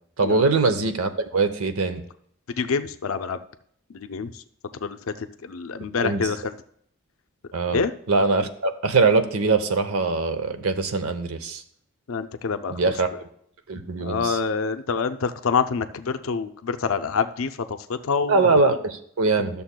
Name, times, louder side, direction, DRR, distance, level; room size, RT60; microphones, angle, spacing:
voice 1, 0.2-2.0 6.0-6.3 7.5-11.6 12.7-13.1 13.7-14.4 18.3-19.6, right 3 dB, 90° right, 10 dB, 0.8 m, -22 dB
voice 2, 2.6-3.4 3.9-4.3 4.8-6.5 7.7-7.9 12.1-12.9 14.0-18.4, left 5 dB, 75° left, 10 dB, 0.5 m, -26 dB
13.0 x 6.8 x 2.2 m, 0.66 s
head